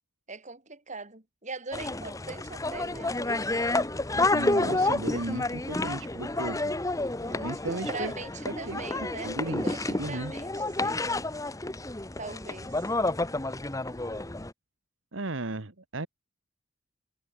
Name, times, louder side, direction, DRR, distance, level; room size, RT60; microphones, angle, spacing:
voice 1, 0.3-3.5 7.2-11.2 12.2-13.1, right 3 dB, 35° right, 3.9 m, -42 dB
sound 1, 1.7-14.5, left 2 dB, 15° left, 1.1 m, -30 dB
voice 2, 4.3-6.7 7.4-8.1 8.5-10.3 15.1-16.1, right 2 dB, 65° right, 1.5 m, -35 dB
head